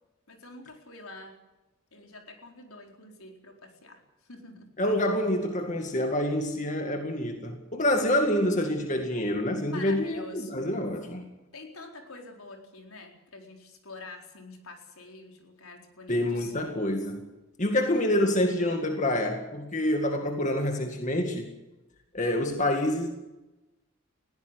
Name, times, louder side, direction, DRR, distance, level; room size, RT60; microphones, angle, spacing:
voice 1, 0.3-1.4 1.9-4.7 9.7-10.5 11.5-16.5, left 3 dB, 80° left, 4.3 m, -46 dB
voice 2, 4.8-11.2 16.1-17.3 17.6-21.5 22.1-23.1, left 1 dB, 35° left, 2.0 m, -27 dB
20.5 x 16.5 x 8.1 m
head